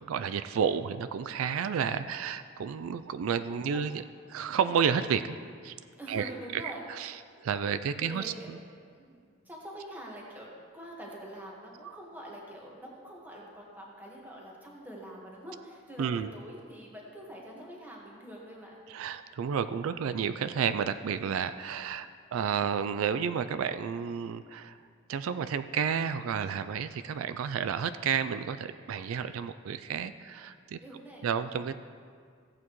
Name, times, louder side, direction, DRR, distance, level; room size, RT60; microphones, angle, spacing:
voice 1, 0.0-4.0 4.3-5.4 5.6-5.7 6.1-6.6 6.9-8.6 11.8-11.9 16.0-16.3 18.9-24.8 25.1-30.8 31.2-31.8, right 7 dB, 80° right, 12 dB, 0.3 m, -31 dB
voice 2, 3.5-4.0 6.0-6.8 8.0-8.5 9.0-18.8 30.8-31.3, right 1 dB, 10° right, -3 dB, 1.5 m, -45 dB
15.0 x 8.5 x 3.1 m, 2.1 s
head